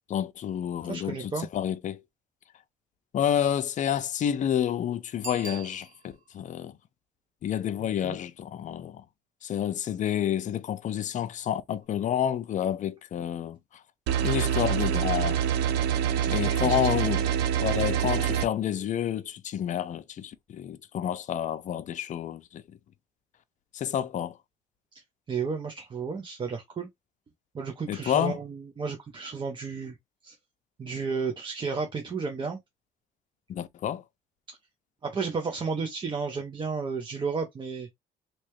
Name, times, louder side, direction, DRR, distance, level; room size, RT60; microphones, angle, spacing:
voice 1, 0.1-2.0 3.1-6.8 7.4-9.0 9.4-13.6 14.2-15.4 16.3-17.3 17.6-22.6 23.7-24.3 27.9-28.4 33.5-34.0, left 10 dB, 50° left, 0.6 m, -29 dB
voice 2, 0.8-1.5 7.8-8.2 16.2-16.9 25.3-26.9 27.5-30.0 30.2-30.3 30.8-32.6 35.0-37.9, right 5 dB, 30° right, 0.7 m, -33 dB
Bicycle bell, 5.2-6.4 11.8-11.9, right 5 dB, 50° right, 1.2 m, -43 dB
sound 1, 14.1-18.5, right 9 dB, 85° right, 0.6 m, -26 dB
3.3 x 2.9 x 3.0 m
cardioid pair, 110°, 17 cm